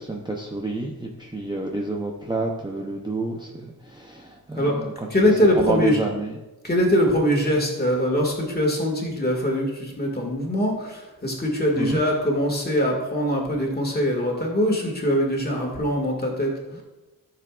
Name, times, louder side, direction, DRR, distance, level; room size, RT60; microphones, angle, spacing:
voice 1, 0.0-4.9 5.6-6.3 11.8-12.0, right 2 dB, 10° right, 0 dB, 0.7 m, -29 dB
voice 2, 5.1-6.0 6.6-16.8, equal, 25° left, 0 dB, 2.1 m, -22 dB
14.0 x 6.8 x 2.5 m, 1.1 s
wide cardioid pair, 140°, 38 cm